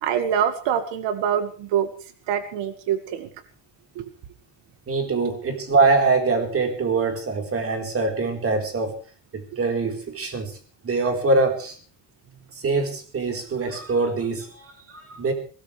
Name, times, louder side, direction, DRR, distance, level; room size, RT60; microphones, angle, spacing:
voice 1, 0.0-1.9 2.3-3.3 4.0-4.1, right 9 dB, 85° right, 9 dB, 2.1 m, -25 dB
voice 2, 4.9-8.9 9.3-10.6 10.8-11.8 12.5-15.3, right 3 dB, 30° right, 4 dB, 4.3 m, -23 dB
22.0 x 18.5 x 3.4 m, 0.40 s
cardioid pair, 155°, 42 cm